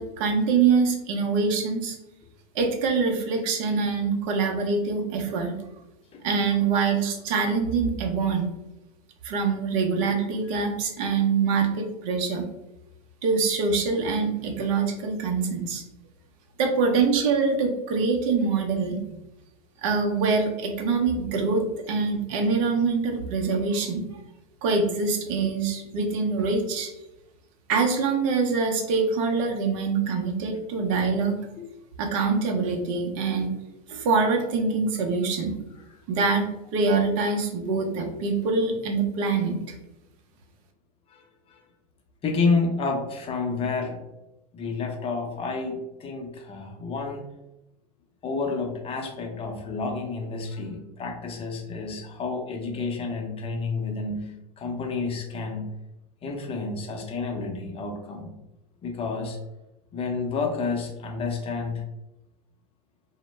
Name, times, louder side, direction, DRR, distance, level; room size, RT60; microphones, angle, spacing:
voice 1, 0.0-2.0 2.5-5.6 6.2-8.5 9.2-12.4 13.2-15.8 16.6-19.2 19.8-24.0 24.6-26.9 27.7-31.3 32.0-33.5 33.9-35.6 36.1-39.7, right 4 dB, 55° right, 3 dB, 0.6 m, -24 dB
voice 2, 41.1-41.6 42.2-44.0 44.5-47.3 48.2-55.7 56.2-58.3 58.8-59.4 59.9-61.8, left 4 dB, 30° left, 2 dB, 0.6 m, -30 dB
2.1 x 2.0 x 3.1 m, 0.93 s
hypercardioid pair, 95°, 20 cm